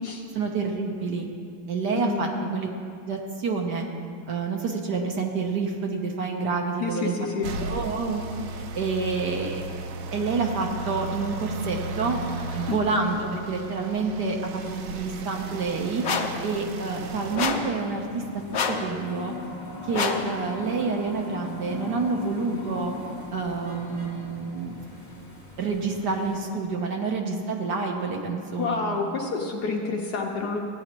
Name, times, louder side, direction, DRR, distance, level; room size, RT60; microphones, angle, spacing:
voice 1, 0.3-1.3 1.7-2.7 3.1-3.9 4.3-7.1 7.6-8.2 8.6-9.6 10.1-12.2 12.6-16.0 16.4-18.2 18.7-19.3 19.9-22.9 23.3-24.8 25.6-28.8, right 4 dB, 60° right, 1 dB, 1.3 m, -28 dB
voice 2, 1.9-2.4 6.8-7.5 12.7-12.8 28.6-30.6, left 4 dB, 60° left, 0 dB, 1.2 m, -29 dB
sound 1, 7.4-17.4, right 3 dB, 80° right, 1.5 m, -35 dB
sound 2, 16.0-16.4 17.3-17.7 18.5-18.9 19.9-20.3, left 5 dB, 80° left, 0.6 m, -27 dB
sound 3, 16.9-26.4, left 3 dB, 25° left, 3.4 m, -40 dB
16.5 x 9.4 x 3.0 m, 2.3 s
omnidirectional pair, 2.3 m